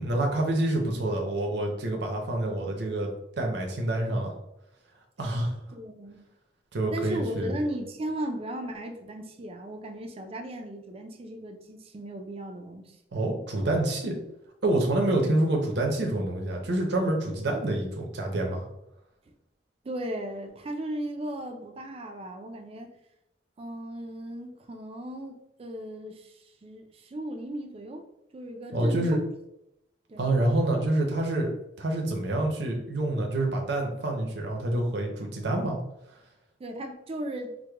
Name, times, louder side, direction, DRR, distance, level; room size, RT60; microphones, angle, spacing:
voice 1, 0.0-3.1 3.4-4.3 5.2-5.6 6.7-7.5 13.1-14.2 14.6-18.7 28.7-29.2 30.2-31.5 31.8-35.8, right 1 dB, 70° right, 1 dB, 0.7 m, -27 dB
voice 2, 5.7-6.2 6.9-13.0 15.0-15.2 19.8-22.9 23.6-28.0 28.3-29.3 30.1-30.3 36.6-37.5, right 1 dB, 35° right, 5 dB, 0.4 m, -36 dB
4.7 x 2.1 x 2.2 m, 0.83 s
head